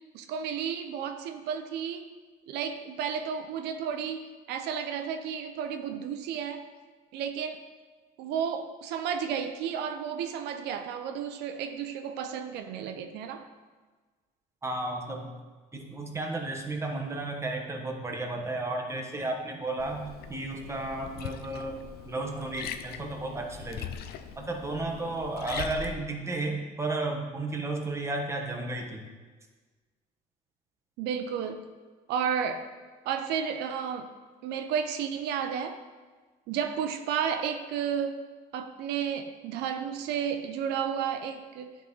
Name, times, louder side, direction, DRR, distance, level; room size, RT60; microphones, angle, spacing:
voice 1, 0.1-2.1 2.5-6.6 7.1-7.6 8.2-13.5 31.0-31.7 32.1-32.7 33.1-34.1 34.4-35.8 36.5-38.2 38.5-41.7, right 7 dB, 85° right, 7 dB, 0.5 m, -32 dB
voice 2, 14.6-15.3 15.7-20.0 20.3-23.9 24.4-29.0, right 2 dB, 15° right, 2 dB, 1.0 m, -33 dB
Liquid, 19.8-25.9, left 8 dB, 70° left, 0.5 m, -41 dB
10.5 x 3.7 x 3.9 m, 1.4 s
cardioid pair, 110°, 17 cm